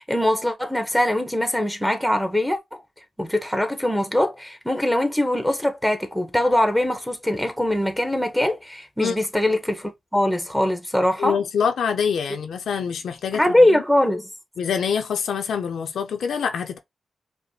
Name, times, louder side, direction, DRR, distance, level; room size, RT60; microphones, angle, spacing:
voice 1, 0.0-2.8 3.2-11.3 13.3-14.3, left 1 dB, ahead, 1.0 m, -22 dB
voice 2, 11.2-13.8 14.6-16.8, left 7 dB, 90° left, 0.6 m, -25 dB
5.1 x 2.1 x 3.1 m
cardioid pair, 85°, 0 cm